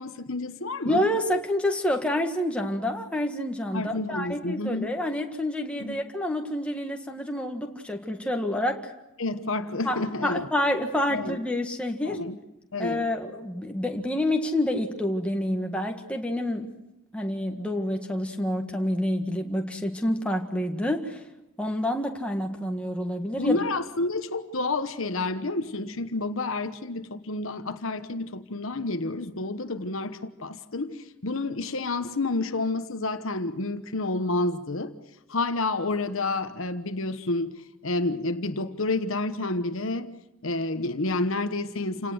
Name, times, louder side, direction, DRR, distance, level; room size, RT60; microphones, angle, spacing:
voice 1, 0.0-1.0 3.7-4.9 5.8-6.0 9.2-10.5 11.1-11.4 12.0-12.4 12.7-13.1 23.4-34.9 35.3-37.6 37.8-40.1 40.4-42.1, left 2 dB, 65° left, 1.2 m, -29 dB
voice 2, 0.8-8.9 9.8-12.2 12.8-16.7 17.1-21.2 21.6-23.6, left 1 dB, 5° left, 1.7 m, -28 dB
29.0 x 18.0 x 7.9 m
head